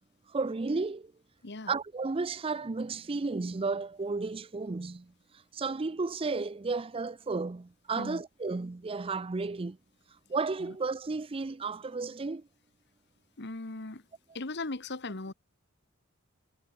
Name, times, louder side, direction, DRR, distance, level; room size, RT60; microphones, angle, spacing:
voice 1, 0.3-1.1 1.7-5.0 5.5-9.8 10.3-12.4, right 3 dB, 25° right, 0.5 m, -33 dB
voice 2, 13.4-14.0 14.3-15.3, left 2 dB, 55° left, 1.5 m, -38 dB
head